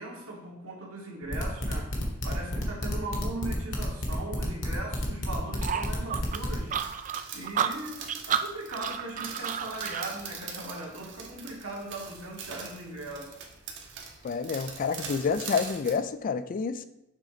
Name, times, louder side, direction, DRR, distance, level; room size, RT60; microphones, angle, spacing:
voice 1, 0.0-1.9 2.2-6.8 7.3-13.4, right 2 dB, 75° right, -2 dB, 1.7 m, -39 dB
sound 1, 1.3-6.6, left 1 dB, 60° left, 1.4 m, -31 dB
sound 2, 5.6-10.1, right 8 dB, 35° right, 0.3 m, -31 dB
sound 3, 6.3-16.0, right 5 dB, 60° right, 1.0 m, -43 dB
voice 2, 14.2-16.8, left 5 dB, 40° left, 12 dB, 0.3 m, -29 dB
6.5 x 3.8 x 5.0 m, 0.86 s
head